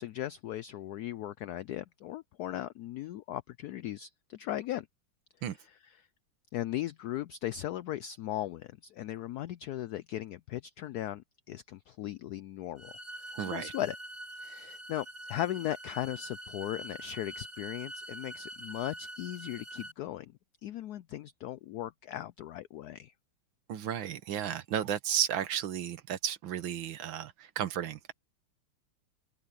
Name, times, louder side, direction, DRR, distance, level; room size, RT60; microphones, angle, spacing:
voice 1, 0.0-4.9 6.5-14.0 14.4-20.3 20.6-23.1, left 13 dB, 85° left, 0.8 m, -38 dB
sound 1, 12.8-19.9, right 1 dB, 35° right, 4.5 m, -45 dB
voice 2, 13.3-13.7 23.7-28.1, right 10 dB, 75° right, 1.8 m, -33 dB
open air
omnidirectional pair, 2.2 m